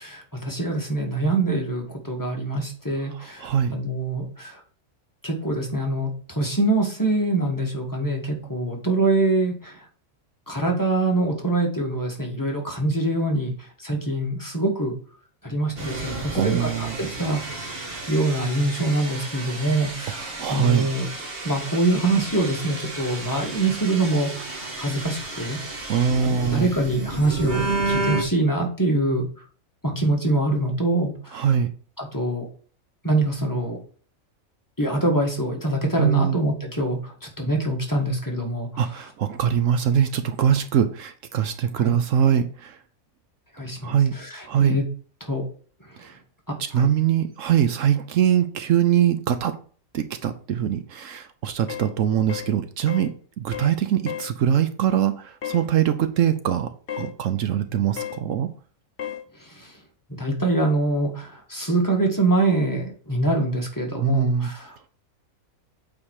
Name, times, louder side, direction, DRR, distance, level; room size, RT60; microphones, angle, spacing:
voice 1, 0.0-4.6 5.2-9.9 10.5-14.9 15.4-21.1 21.4-25.9 26.2-29.3 29.8-31.6 32.0-32.5 33.0-33.8 34.8-39.1 41.8-42.0 43.5-44.9 45.2-45.5 45.8-46.0 46.5-46.9 59.3-59.8 60.1-64.9, right 2 dB, 15° left, 0 dB, 1.8 m, -25 dB
voice 2, 3.4-3.7 16.3-17.0 20.4-20.9 25.9-26.7 31.3-31.7 36.0-36.4 38.8-42.7 43.8-44.1 44.5-44.8 46.0-46.1 46.7-49.6 49.9-56.7 57.0-58.5 64.0-64.5, right 9 dB, 70° right, 10 dB, 1.0 m, -22 dB
sound 1, 15.8-28.2, right 2 dB, 45° right, 1.8 m, -32 dB
sound 2, 51.7-51.9 52.3-52.5 52.9-53.1 53.5-53.8 54.1-54.3 55.4-55.7 56.9-57.1 58.0-58.2 59.0-59.2, left 10 dB, 45° left, 1.0 m, -33 dB
8.5 x 4.5 x 4.8 m, 0.42 s
omnidirectional pair, 1.4 m